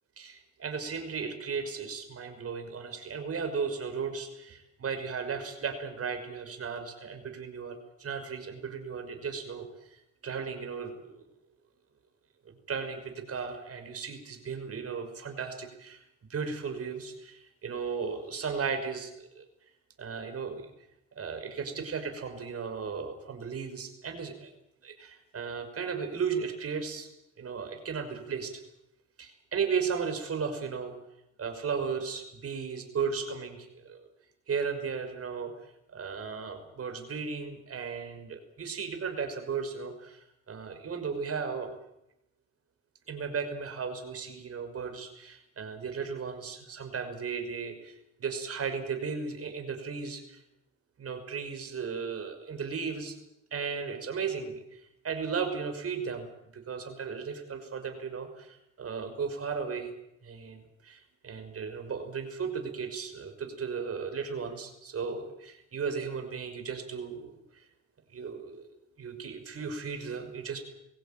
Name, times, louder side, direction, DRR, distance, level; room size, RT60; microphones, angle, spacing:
voice 1, 0.2-11.3 12.7-16.0 16.3-19.5 20.0-20.7 21.2-24.5 24.8-27.1 27.4-28.6 29.2-31.0 31.4-34.1 34.5-35.5 35.9-41.7 43.1-50.4 51.0-53.2 53.5-56.2 56.5-59.9 60.2-67.6 68.1-68.7 69.0-70.6, right 5 dB, 50° right, 6 dB, 5.7 m, -35 dB
23.0 x 16.5 x 9.1 m, 0.83 s
cardioid pair, 90°, 30 cm